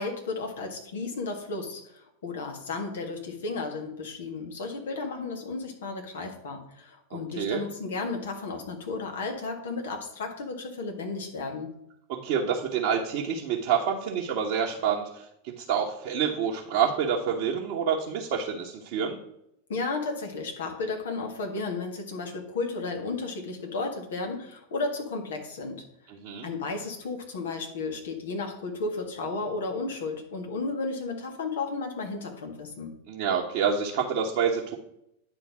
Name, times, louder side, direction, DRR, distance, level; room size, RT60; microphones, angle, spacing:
voice 1, 0.0-11.7 19.7-25.8 26.4-33.0, left 3 dB, 60° left, 3 dB, 1.8 m, -33 dB
voice 2, 7.1-7.6 12.1-19.2 26.1-26.5 33.1-34.8, right 7 dB, 45° right, -3 dB, 1.2 m, -28 dB
9.7 x 3.8 x 6.1 m, 0.77 s
figure-of-eight pair, 90°, 0 cm